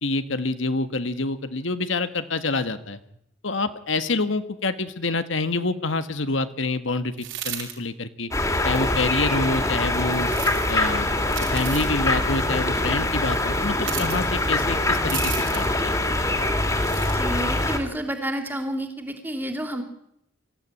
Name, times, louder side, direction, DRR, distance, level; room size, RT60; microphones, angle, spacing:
voice 1, 0.0-3.0 3.4-8.3 8.6-10.3 10.7-11.1 11.5-15.9, left 3 dB, 70° left, 10 dB, 1.6 m, -27 dB
sound 1, 7.2-7.7 10.2-10.7 11.3-11.9 13.8-14.2 15.1-15.7 16.7-17.1, right 11 dB, 70° right, 6.2 m, -33 dB
sound 2, 8.3-17.8, left 1 dB, 15° left, 2.9 m, -24 dB
voice 2, 17.1-19.8, right 1 dB, 10° right, 6 dB, 3.2 m, -30 dB
25.5 x 16.0 x 9.9 m, 0.76 s
head